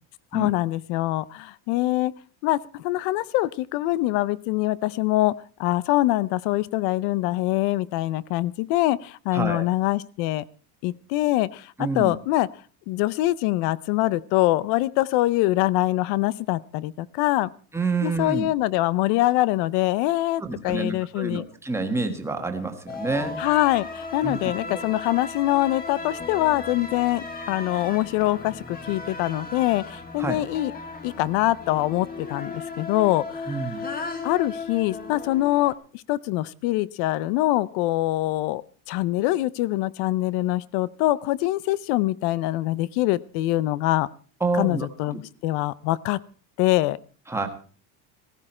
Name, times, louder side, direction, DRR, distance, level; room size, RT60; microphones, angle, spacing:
voice 1, 0.3-2.1 2.4-5.3 5.6-10.4 10.8-12.5 12.9-17.5 18.0-21.4 23.4-30.7 31.0-33.6 34.2-35.7 36.1-38.6 38.9-44.1 44.6-46.2 46.6-47.0, left 16 dB, 65° left, 20 dB, 0.7 m, -24 dB
voice 2, 9.3-9.7 11.8-12.2 17.7-18.5 20.4-23.4 24.2-24.4 30.2-30.4 33.5-33.8 44.4-44.9 47.3-47.5, right 3 dB, 5° right, 5 dB, 1.4 m, -28 dB
sound 1, 22.9-35.7, left 3 dB, 20° left, 1.6 m, -36 dB
15.5 x 15.0 x 4.3 m, 0.40 s
cardioid pair, 165°, 43 cm